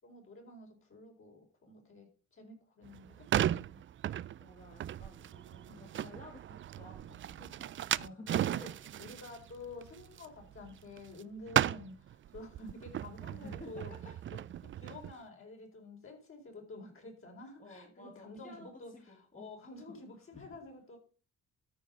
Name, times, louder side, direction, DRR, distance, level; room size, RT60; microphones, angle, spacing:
voice 1, 0.0-3.8 5.7-5.8 7.9-8.7 9.0-21.0, left 2 dB, 45° left, 1 dB, 4.4 m, -50 dB
sound 1, 2.8-11.2 11.5-15.1, right 11 dB, 40° right, 0.4 m, -36 dB
voice 2, 4.4-8.7 13.3-13.7 14.3-14.4 17.6-19.4 19.9-20.0 20.3-20.4, left 2 dB, 25° left, 0 dB, 2.4 m, -53 dB
13.0 x 4.9 x 5.4 m, 0.39 s
cardioid pair, 90°, 30 cm